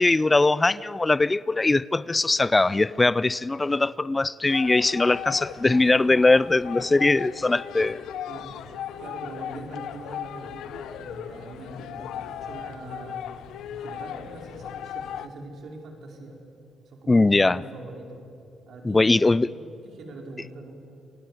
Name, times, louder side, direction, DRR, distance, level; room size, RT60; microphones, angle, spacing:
voice 1, 0.0-8.0 17.1-17.6 18.8-19.5, left 2 dB, 20° left, 0.5 m, -21 dB
sound 1, 4.5-15.3, left 9 dB, 80° left, 0.9 m, -37 dB
voice 2, 8.3-8.7 9.0-13.4 13.7-16.4 16.9-18.2 18.7-20.7, right 2 dB, 65° right, 4.8 m, -42 dB
27.5 x 19.0 x 8.1 m
cardioid pair, 90°, 0 cm